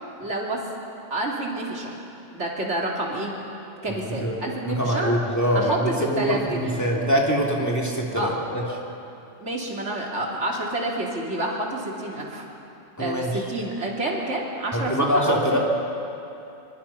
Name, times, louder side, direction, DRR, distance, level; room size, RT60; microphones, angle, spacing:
voice 1, 0.2-0.6 1.1-2.0 2.3-3.3 3.8-5.1 5.5-6.7 8.1-8.3 9.4-12.5 13.0-15.4, right 2 dB, 65° right, -2 dB, 3.3 m, -28 dB
voice 2, 3.9-4.3 4.6-8.6 13.0-13.4 14.7-15.6, equal, 15° left, -2 dB, 3.0 m, -24 dB
25.0 x 24.0 x 5.9 m, 2.8 s
omnidirectional pair, 1.3 m